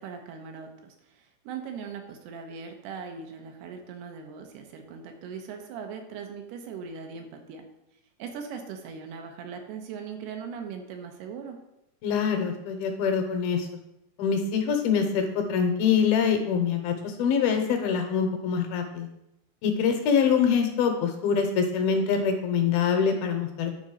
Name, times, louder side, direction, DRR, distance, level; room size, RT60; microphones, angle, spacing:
voice 1, 0.0-7.7 8.2-11.6, right 6 dB, 80° right, 4 dB, 3.0 m, -40 dB
voice 2, 12.0-13.7 14.2-19.1 19.6-23.7, left 6 dB, 75° left, 4 dB, 2.5 m, -24 dB
9.4 x 4.0 x 6.3 m, 0.88 s
omnidirectional pair, 4.7 m